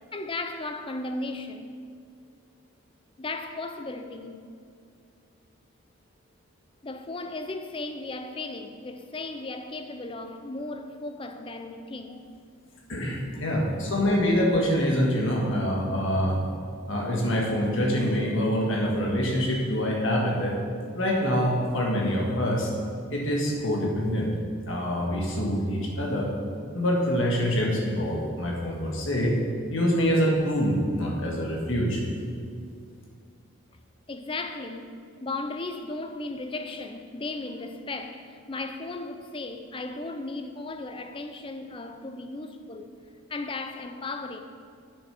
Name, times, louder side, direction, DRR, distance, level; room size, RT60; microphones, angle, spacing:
voice 1, 0.1-1.8 3.2-4.4 6.8-12.3 13.3-13.6 34.1-34.9 35.2-42.9 43.3-44.4, left 2 dB, 25° left, 0.5 m, -36 dB
voice 2, 12.9-16.4 16.9-20.6 20.9-22.7 23.1-24.3 24.7-26.3 26.7-29.4 29.7-32.0, equal, 60° left, 1.8 m, -25 dB
8.4 x 6.9 x 5.9 m
head